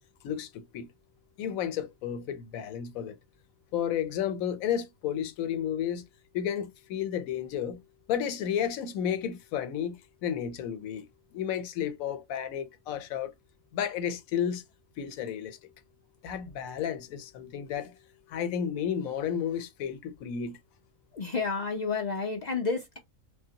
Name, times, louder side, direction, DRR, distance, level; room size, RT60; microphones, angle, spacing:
voice 1, 0.2-0.9 1.4-3.2 3.7-6.0 6.3-7.8 8.1-11.1 11.3-13.3 13.7-14.6 15.0-15.6 16.2-17.9 18.3-20.6, left 9 dB, 85° left, 1.0 m, -32 dB
voice 2, 21.1-23.0, left 4 dB, 60° left, 0.4 m, -30 dB
3.4 x 2.0 x 2.7 m
omnidirectional pair, 1.4 m